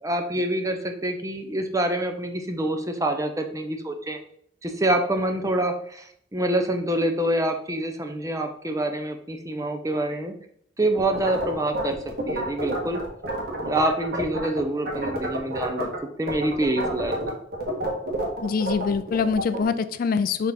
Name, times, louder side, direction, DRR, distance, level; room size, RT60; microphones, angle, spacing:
voice 1, 0.0-4.2 4.6-10.3 10.8-12.0 12.3-13.0 13.6-15.9 16.2-17.2, right 1 dB, 20° right, 5 dB, 0.7 m, -26 dB
sound 1, 11.0-14.6 14.8-16.0 16.3-19.6, right 1 dB, 60° right, 1.7 m, -29 dB
voice 2, 18.4-20.5, left 5 dB, 50° left, 12 dB, 0.3 m, -24 dB
6.5 x 3.6 x 4.2 m, 0.65 s
head